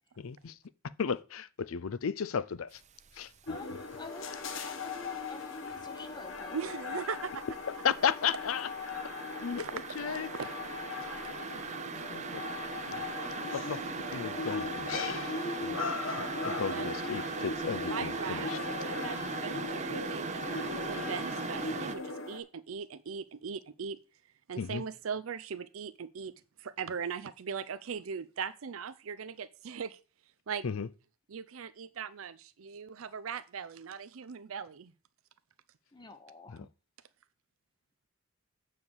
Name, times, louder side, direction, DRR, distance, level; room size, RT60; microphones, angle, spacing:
voice 1, 0.2-0.6 1.0-2.8 3.2-3.6 7.8-8.7 9.4-10.3 11.5-11.6 11.9-12.4 12.9-13.0 13.5-15.2 15.6-15.9 16.4-18.6 24.6-24.8 30.6-30.9 36.5-36.7, left 7 dB, 85° left, 0.5 m, -34 dB
sound 1, 2.9-3.3 3.6-5.2 5.6-21.9, right 5 dB, 35° right, 0.6 m, -39 dB
sound 2, 3.5-22.4, left 4 dB, 65° left, 1.2 m, -39 dB
voice 2, 3.5-6.9 35.9-36.7, left 3 dB, 20° left, 0.8 m, -49 dB
voice 3, 6.5-7.4 9.6-10.6 16.7-16.9 17.9-20.5 20.8-24.0 24.5-26.3 26.6-30.0 30.5-30.7 31.3-34.9, right 6 dB, 80° right, 0.5 m, -39 dB
8.0 x 4.9 x 7.1 m
head